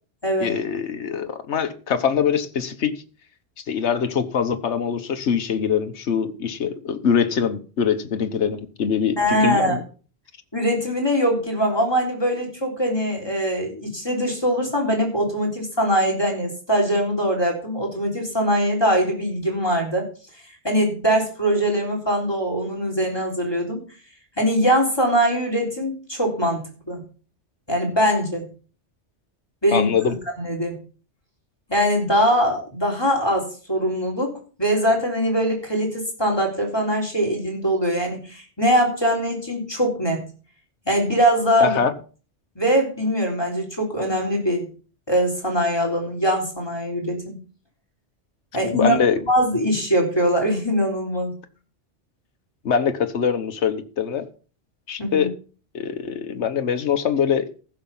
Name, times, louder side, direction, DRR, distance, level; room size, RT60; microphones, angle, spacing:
voice 1, 0.4-3.0 3.7-9.8 29.7-30.1 41.6-41.9 48.7-49.2 52.6-54.3 54.9-55.3 55.7-57.5, left 7 dB, 70° left, 1.4 m, -23 dB
voice 2, 9.2-9.8 10.5-20.1 20.6-23.8 24.4-27.0 27.7-28.5 29.6-29.9 30.4-30.8 31.7-34.3 34.6-40.2 40.9-41.8 42.6-44.7 45.1-47.4 48.5-49.0 49.3-51.3 55.0-55.3, equal, 20° left, 3.7 m, -22 dB
15.0 x 6.7 x 5.5 m
omnidirectional pair, 1.2 m